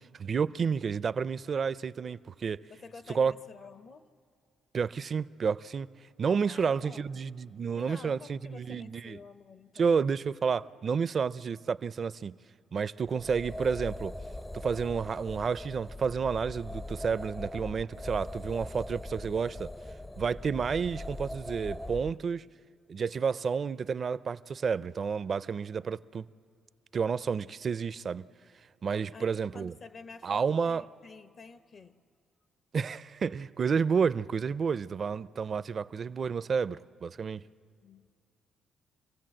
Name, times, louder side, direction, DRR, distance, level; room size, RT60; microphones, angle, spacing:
voice 1, 0.2-2.6 3.1-3.3 4.7-5.9 6.2-9.2 9.8-12.3 12.7-14.1 14.5-19.7 20.2-22.4 22.9-26.2 26.9-28.2 28.8-29.7 30.2-30.8 32.7-37.4, right 6 dB, 45° right, 0.4 m, -30 dB
voice 2, 2.7-4.1 6.5-7.1 7.7-10.0 29.1-32.0 37.8-38.1, left 4 dB, 50° left, 0.7 m, -49 dB
sound 1, 13.0-22.2, left 1 dB, 10° left, 0.4 m, -41 dB
27.0 x 16.5 x 7.7 m
cardioid pair, 90°, 0 cm